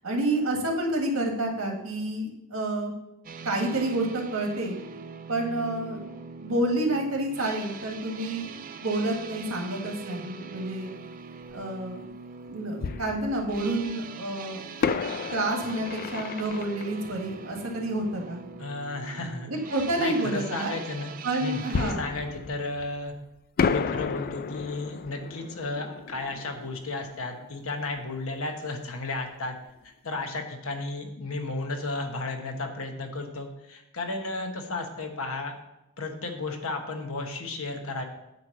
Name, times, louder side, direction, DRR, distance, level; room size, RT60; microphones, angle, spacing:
voice 1, 0.0-2.9 3.4-4.8 5.3-6.0 6.4-10.9 11.5-12.1 12.5-14.6 15.3-18.4 19.5-20.7 21.2-22.0, right 1 dB, 80° right, 1 dB, 1.7 m, -29 dB
sound 1, 3.2-21.9, right 5 dB, 40° right, 0.4 m, -42 dB
Fireworks, 11.5-11.6 12.8-13.9 14.8-18.3 21.7-23.2 23.6-28.1 28.4-28.5 29.0-29.2, left 5 dB, 45° left, 0.3 m, -32 dB
voice 2, 18.6-19.5 20.0-21.1 21.4-23.1 23.7-29.6 30.0-35.5 36.0-38.0, left 2 dB, 70° left, 3 dB, 1.2 m, -33 dB
9.3 x 3.2 x 6.7 m, 0.89 s
head